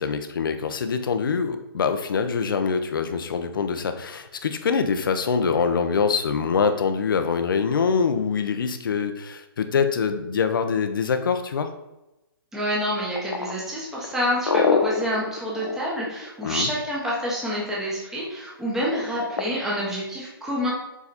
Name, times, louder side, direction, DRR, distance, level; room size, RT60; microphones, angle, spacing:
voice 1, 0.0-11.7 16.4-16.7, left 5 dB, 60° left, 7 dB, 0.9 m, -24 dB
voice 2, 12.5-20.7, equal, 5° right, -5 dB, 1.2 m, -27 dB
sound 1, 13.2-16.8 18.9-19.5, left 5 dB, 85° left, 1.0 m, -25 dB
7.3 x 4.1 x 4.2 m, 0.96 s
hypercardioid pair, 165°, 13 cm